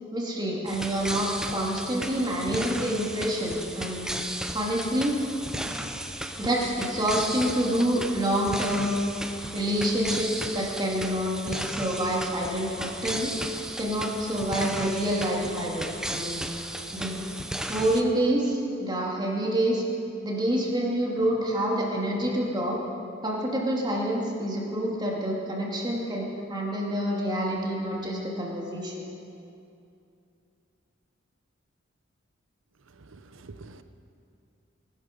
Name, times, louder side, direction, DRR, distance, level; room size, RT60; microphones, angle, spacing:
voice 1, 0.1-4.1 4.5-5.1 6.4-8.9 9.5-13.3 13.8-16.4 16.9-17.2 17.7-19.9 20.2-22.8 23.2-29.0, right 1 dB, 20° right, -3 dB, 2.8 m, -27 dB
sound 1, 0.7-18.0, right 1 dB, 5° right, 0.8 m, -35 dB
voice 2, 32.9-33.8, right 3 dB, 75° right, 10 dB, 0.8 m, -47 dB
20.5 x 12.5 x 5.4 m, 2.6 s
head